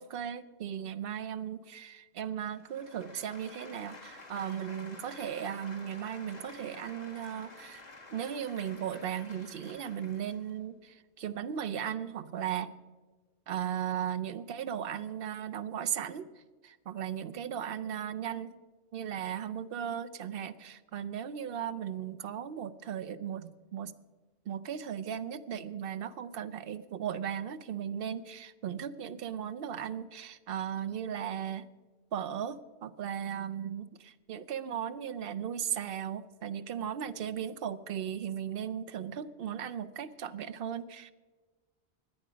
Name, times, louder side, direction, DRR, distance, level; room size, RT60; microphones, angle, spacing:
voice 1, 0.0-7.8 8.1-12.7 13.5-16.3 16.6-18.5 18.9-23.9 24.5-31.7 32.1-41.1, right 9 dB, 65° right, 14 dB, 0.8 m, -37 dB
sound 1, 2.5-10.5, left 3 dB, 40° left, 1.9 m, -51 dB
17.0 x 10.5 x 5.0 m, 1.3 s
omnidirectional pair, 1.1 m